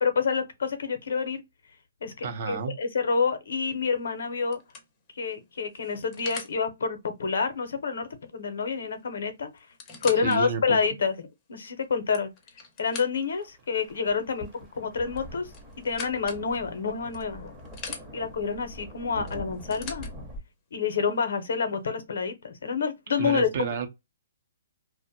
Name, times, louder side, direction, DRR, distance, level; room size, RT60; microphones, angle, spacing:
voice 1, 0.0-1.4 2.0-4.6 5.2-9.5 10.0-11.1 11.5-12.3 12.8-17.5 18.1-20.1 20.7-23.5, left 5 dB, 70° left, 0.7 m, -28 dB
voice 2, 2.2-2.7 10.2-10.8 23.2-23.9, right 6 dB, 45° right, 0.6 m, -30 dB
sound 1, 3.9-4.0 4.5-6.6 8.6-8.7 9.0-9.1 9.6-10.4 11.0-11.1 11.8-13.4 15.1-16.4 17.1-18.0 19.3-20.1 21.0-21.1, left 5 dB, 20° left, 0.6 m, -42 dB
sound 2, 13.1-20.4, equal, 10° right, 0.8 m, -44 dB
2.5 x 2.0 x 2.7 m
hypercardioid pair, 160°, 0 cm